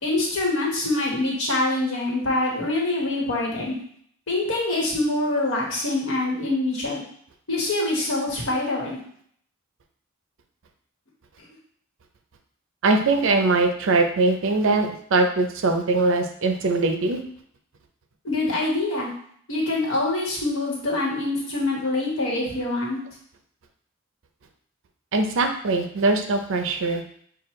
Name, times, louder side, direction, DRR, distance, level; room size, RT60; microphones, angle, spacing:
voice 1, 0.0-3.8 4.3-7.0 7.5-9.0 11.4-11.5 18.2-19.1 19.5-23.0, left 2 dB, 75° left, -3 dB, 1.3 m, -25 dB
voice 2, 12.8-17.2 25.1-27.0, right 3 dB, 65° right, 5 dB, 0.5 m, -21 dB
5.7 x 2.4 x 3.1 m, 0.63 s
head